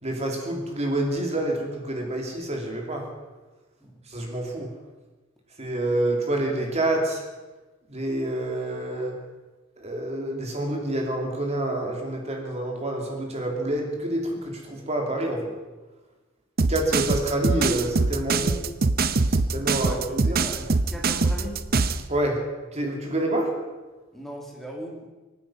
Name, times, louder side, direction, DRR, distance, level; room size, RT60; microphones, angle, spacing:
voice 1, 0.0-3.0 4.1-4.7 5.6-7.2 7.9-9.2 9.8-15.5 16.7-18.6 19.3-20.4 22.1-22.4 22.7-23.5, right 1 dB, 35° right, 1 dB, 3.0 m, -27 dB
sound 1, 16.6-22.0, right 3 dB, 50° right, 0.7 m, -23 dB
voice 2, 20.2-21.6 24.1-24.9, right 1 dB, ahead, -1 dB, 2.7 m, -38 dB
25.5 x 9.8 x 5.8 m, 1.2 s
head